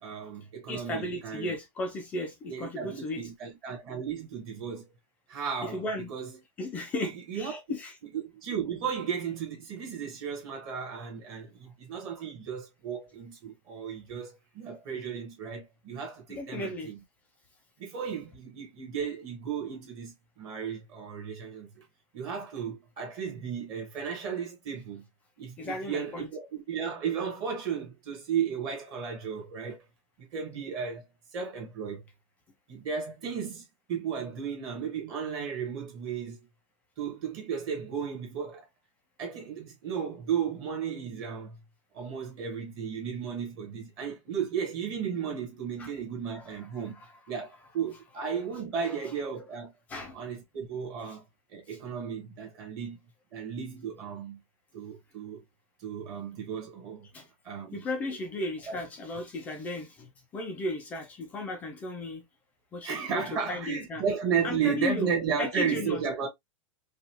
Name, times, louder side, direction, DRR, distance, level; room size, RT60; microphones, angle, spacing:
voice 1, 0.0-1.5 2.5-4.9 5.3-6.4 7.0-7.6 8.1-17.0 17.8-21.8 22.1-25.0 25.4-29.8 30.2-31.0 31.3-32.0 32.7-36.4 37.0-38.6 39.2-41.6 41.9-47.0 47.3-49.7 50.1-51.2 51.5-53.0 53.3-54.4 54.7-55.4 55.8-57.1 57.4-57.8 58.7-58.8 62.8-66.3, right 7 dB, 25° right, 1.2 m, -34 dB
voice 2, 0.7-3.3 5.6-6.1 6.6-8.0 16.3-16.9 25.6-26.3 45.8-45.9 46.3-46.6 46.9-47.1 49.9-50.2 57.1-57.3 57.7-62.2 62.7-64.0 64.4-65.1 65.4-66.0, left 2 dB, 10° left, 0.4 m, -35 dB
5.0 x 2.3 x 2.9 m
supercardioid pair, 180°, 17 cm